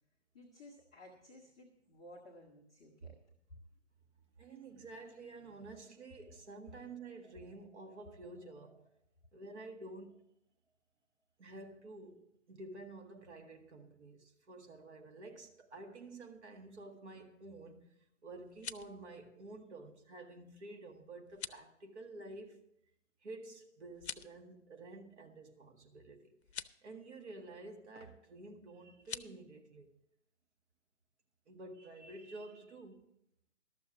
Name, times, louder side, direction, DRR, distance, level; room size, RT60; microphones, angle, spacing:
voice 1, 0.3-3.2 3.5-3.6, left 1 dB, 5° left, 0.4 m, -56 dB
voice 2, 4.4-8.9 9.3-10.3 11.4-18.0 18.2-22.7 23.2-29.9 31.5-33.1, right 2 dB, 65° right, 1.8 m, -50 dB
sound 1, 18.4-19.0 21.3-21.7 23.9-24.4 26.4-26.8 29.0-29.3, left 8 dB, 60° left, 0.6 m, -45 dB
12.5 x 6.9 x 7.3 m
figure-of-eight pair, 135°, 37 cm